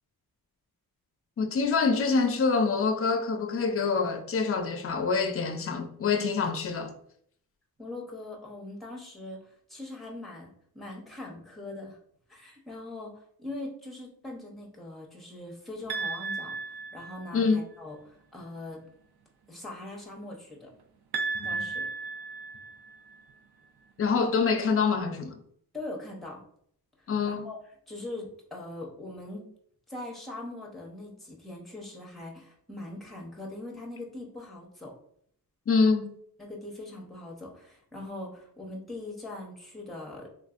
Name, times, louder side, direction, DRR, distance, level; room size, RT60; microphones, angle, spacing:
voice 1, 1.4-6.9 17.3-17.6 21.5-21.7 24.0-25.4 27.1-27.4 35.7-36.1, left 4 dB, 40° left, 0.4 m, -26 dB
voice 2, 7.8-10.5 10.7-12.0 12.3-16.6 16.9-18.8 19.5-20.7 21.4-21.9 25.7-26.4 27.2-27.6 27.9-29.4 29.9-35.0 36.4-40.3, left 2 dB, ahead, 0.7 m, -41 dB
sound 1, 15.9-17.5 21.1-23.2, right 3 dB, 85° right, 0.5 m, -34 dB
3.5 x 2.5 x 2.4 m
wide cardioid pair, 165°, 37 cm